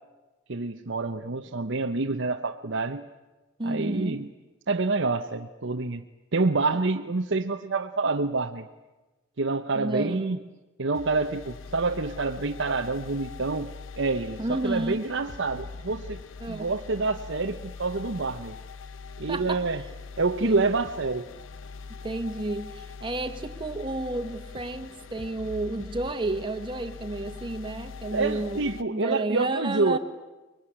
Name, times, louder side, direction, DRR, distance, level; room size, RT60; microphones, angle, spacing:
voice 1, 0.5-3.1 3.6-4.3 4.7-6.0 6.3-8.7 9.4-10.4 10.8-16.2 16.5-18.6 19.2-19.8 20.2-21.3 28.1-30.0, right 3 dB, 65° right, 4 dB, 0.9 m, -27 dB
voice 2, 3.6-4.3 9.7-10.4 14.4-15.0 16.4-16.7 19.3-19.8 20.4-20.7 22.0-30.0, right 2 dB, 25° right, 7 dB, 1.7 m, -31 dB
sound 1, 10.9-28.8, left 5 dB, 75° left, 0.9 m, -42 dB
24.5 x 23.0 x 10.0 m, 1.1 s
head